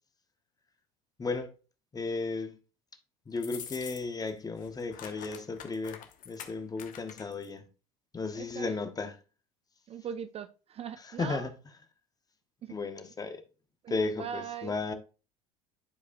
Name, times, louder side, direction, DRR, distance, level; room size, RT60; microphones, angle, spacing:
voice 1, 1.2-1.5 1.9-2.6 3.3-7.7 8.1-9.1 11.2-11.5 12.7-13.4 13.9-14.9, left 3 dB, 20° left, 1.1 m, -34 dB
sound 1, 3.4-4.3 4.6-7.5, left 9 dB, 50° left, 1.0 m, -46 dB
voice 2, 8.3-8.8 9.9-11.5 12.6-12.8 13.8-14.8, right 8 dB, 35° right, 0.5 m, -40 dB
11.0 x 4.8 x 2.5 m
hypercardioid pair, 70°, 18 cm